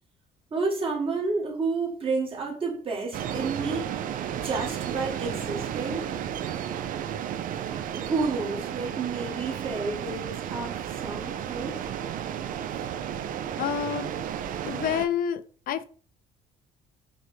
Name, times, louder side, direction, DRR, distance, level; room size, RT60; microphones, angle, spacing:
voice 1, 0.5-3.9 4.4-6.1 7.9-11.8 12.7-12.8, right 4 dB, 30° right, 1.4 m, -30 dB
sound 1, 3.1-15.1, right 9 dB, 55° right, 0.4 m, -33 dB
voice 2, 13.6-14.1 14.7-15.4 15.7-15.9, left 8 dB, 60° left, 0.5 m, -28 dB
6.1 x 2.2 x 3.1 m
cardioid pair, 110°, 17 cm